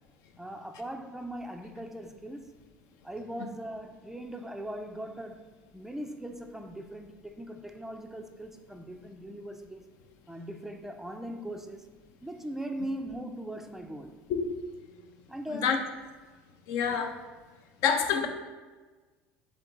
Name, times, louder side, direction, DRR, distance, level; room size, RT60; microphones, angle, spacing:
voice 1, 0.4-2.6 3.0-9.9 10.3-11.9 12.2-14.2 15.3-15.8 16.9-17.0, right 1 dB, 5° right, 5 dB, 0.3 m, -40 dB
voice 2, 16.7-17.2 17.8-18.3, left 7 dB, 65° left, 6 dB, 0.5 m, -26 dB
3.8 x 3.5 x 3.7 m, 1.3 s
hypercardioid pair, 85°, 6 cm